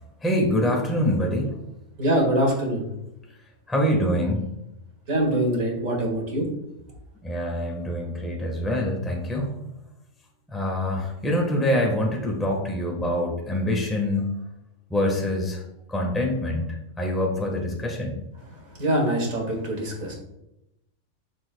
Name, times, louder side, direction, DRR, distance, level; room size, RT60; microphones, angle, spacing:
voice 1, 0.2-1.6 3.7-4.4 7.2-9.6 10.5-14.3 14.9-15.6 15.9-18.2, left 1 dB, ahead, -1 dB, 1.1 m, -25 dB
voice 2, 2.0-2.9 5.1-6.5 18.8-20.1, right 1 dB, 75° right, -1 dB, 2.4 m, -24 dB
11.5 x 4.4 x 2.2 m, 0.85 s
omnidirectional pair, 1.4 m